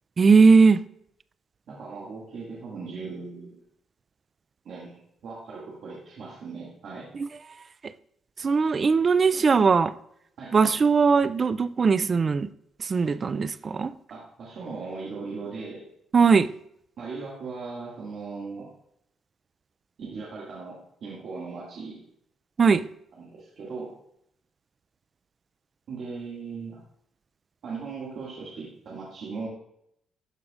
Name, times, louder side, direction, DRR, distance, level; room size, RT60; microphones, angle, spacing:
voice 1, 0.2-0.8 7.1-7.3 8.4-9.9 10.5-12.5 12.8-13.9 16.1-16.5 22.6-22.9, right 5 dB, 40° right, 15 dB, 0.4 m, -19 dB
voice 2, 1.7-3.6 4.6-7.1 10.4-10.5 14.1-15.8 17.0-18.7 20.0-22.0 23.2-23.9 25.9-26.8 27.6-29.5, right 4 dB, 65° right, -6 dB, 2.1 m, -38 dB
13.0 x 4.8 x 2.5 m, 0.73 s
cardioid pair, 90°, 0 cm